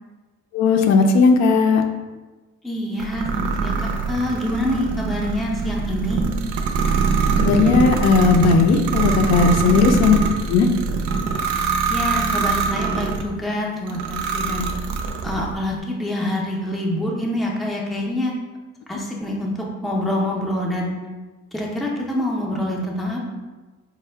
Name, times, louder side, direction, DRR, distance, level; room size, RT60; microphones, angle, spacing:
voice 1, 0.5-1.8 7.4-10.2 10.5-10.7, left 4 dB, 65° left, 4 dB, 0.5 m, -16 dB
voice 2, 2.6-6.2 9.7-9.9 11.9-14.7 15.2-18.3 18.9-19.5 19.8-20.9 21.5-23.2, left 1 dB, ahead, -3 dB, 0.4 m, -26 dB
sound 1, 3.0-13.3 13.9-15.5, right 5 dB, 80° right, 0.5 m, -23 dB
4.5 x 2.1 x 3.3 m, 1.2 s
cardioid pair, 140°, 29 cm